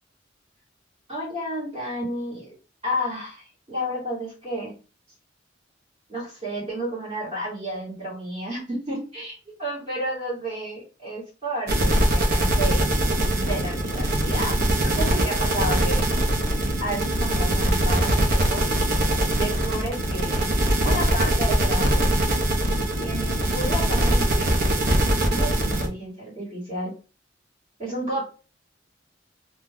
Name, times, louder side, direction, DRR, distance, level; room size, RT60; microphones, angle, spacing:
voice 1, 1.1-2.5 2.8-4.7 6.1-12.9 13.3-16.1 16.8-18.6 19.3-20.4 20.8-22.1 23.0-24.5 25.3-26.9 27.8-28.2, equal, 30° right, -7 dB, 1.6 m, -31 dB
sound 1, 11.7-25.9, right 1 dB, 55° right, 0.7 m, -22 dB
2.8 x 2.2 x 3.5 m, 0.33 s
head